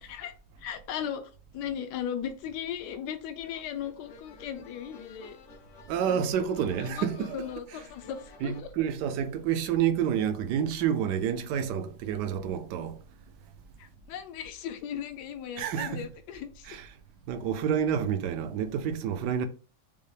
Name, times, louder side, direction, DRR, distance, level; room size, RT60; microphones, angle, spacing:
voice 1, 0.0-0.3 0.6-5.4 6.0-6.3 6.8-8.7 13.8-16.7, left 9 dB, 75° left, 1.2 m, -37 dB
sound 1, 3.4-8.6, left 4 dB, 60° left, 0.8 m, -52 dB
voice 2, 5.9-7.8 8.4-13.0 15.6-16.1 16.6-16.9 17.3-19.5, right 8 dB, 75° right, 1.1 m, -29 dB
5.4 x 2.0 x 3.2 m
omnidirectional pair, 1.9 m